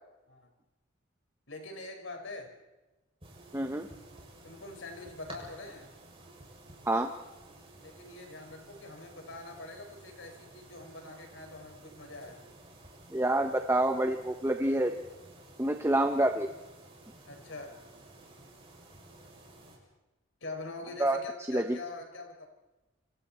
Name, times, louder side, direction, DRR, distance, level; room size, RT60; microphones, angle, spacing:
voice 1, 1.5-2.5 4.4-5.9 7.8-12.4 17.2-17.8 20.4-22.5, left 2 dB, 65° left, 3 dB, 5.8 m, -44 dB
sound 1, 3.2-19.8, right 2 dB, 30° right, 7.2 m, -53 dB
voice 2, 3.5-3.9 6.8-7.1 13.1-14.9 15.6-16.5 21.0-21.2 21.5-21.8, right 1 dB, 15° right, 5 dB, 1.1 m, -27 dB
28.5 x 27.5 x 4.5 m, 1.1 s
head